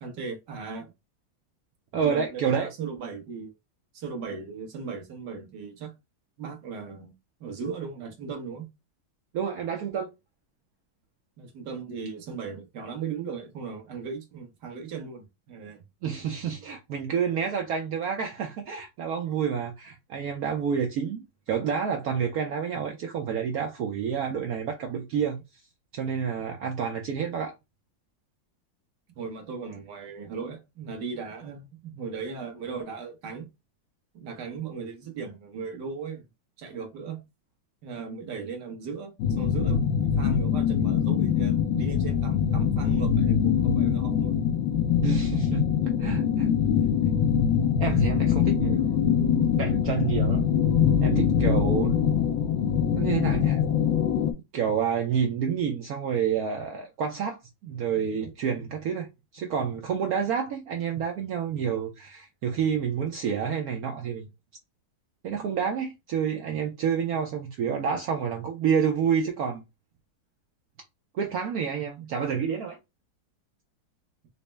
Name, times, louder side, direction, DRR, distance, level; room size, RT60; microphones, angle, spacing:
voice 1, 0.0-0.9 1.9-3.5 3.9-5.9 6.4-7.1 7.4-8.6 11.4-15.8 29.2-33.5 34.1-36.2 36.6-37.2 37.8-44.4, right 5 dB, 60° right, 1.4 m, -37 dB
voice 2, 1.9-2.7 9.3-10.1 16.0-25.4 25.9-27.5 45.0-45.7 46.0-46.5 47.8-50.5 51.0-52.1 53.0-53.6 54.5-64.3 65.2-69.6 71.1-72.8, right 7 dB, 85° right, 0.8 m, -29 dB
sound 1, 39.2-54.3, left 8 dB, 75° left, 1.2 m, -23 dB
4.1 x 2.0 x 3.3 m
omnidirectional pair, 2.2 m